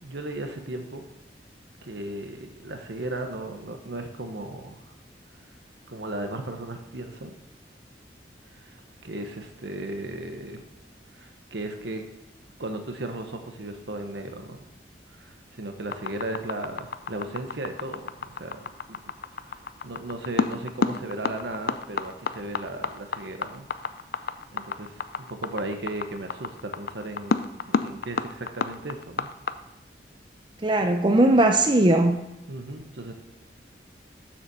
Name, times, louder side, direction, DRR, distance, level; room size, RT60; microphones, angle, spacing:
voice 1, 0.0-1.1 1.8-4.8 5.9-7.3 8.5-8.8 9.0-10.6 11.1-12.1 12.6-14.6 15.1-18.6 18.9-19.0 19.4-23.7 24.5-27.4 27.6-29.3 32.5-33.1, right 2 dB, 75° right, 6 dB, 1.0 m, -36 dB
sound 1, 15.9-29.5, left 5 dB, 55° left, 0.4 m, -29 dB
voice 2, 30.6-32.2, right 1 dB, 25° right, 4 dB, 0.6 m, -19 dB
7.6 x 7.2 x 6.8 m, 0.92 s
head